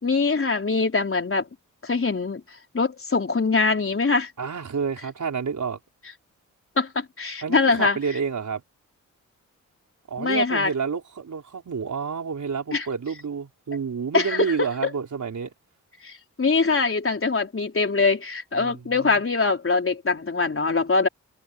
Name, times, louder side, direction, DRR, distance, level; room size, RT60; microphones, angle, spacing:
voice 1, 0.0-1.5 1.8-2.4 2.7-4.3 6.8-8.0 10.2-10.7 12.7-12.9 14.1-14.7 16.0-21.1, left 4 dB, 40° left, 4.2 m, -23 dB
voice 2, 4.4-5.8 7.4-8.6 10.1-15.5 18.6-19.2, right 6 dB, 65° right, 5.3 m, -29 dB
cardioid pair, 60°, 33 cm